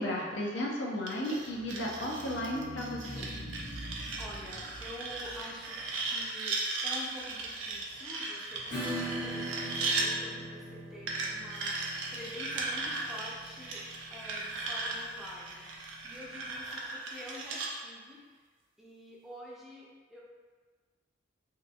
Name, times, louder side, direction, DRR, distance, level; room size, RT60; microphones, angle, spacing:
voice 1, 0.0-3.3, left 1 dB, 70° left, -2 dB, 0.5 m, -34 dB
sound 1, 1.1-10.1 11.1-17.7, right 3 dB, 85° right, 0.4 m, -37 dB
sound 2, 1.4-5.9, equal, 50° left, 1.1 m, -44 dB
voice 2, 3.9-13.8 14.1-18.4 18.8-20.2, left 1 dB, ahead, -6 dB, 0.4 m, -48 dB
Acoustic guitar / Strum, 8.7-15.9, equal, 85° left, 1.1 m, -41 dB
2.7 x 2.5 x 2.3 m, 1.5 s
head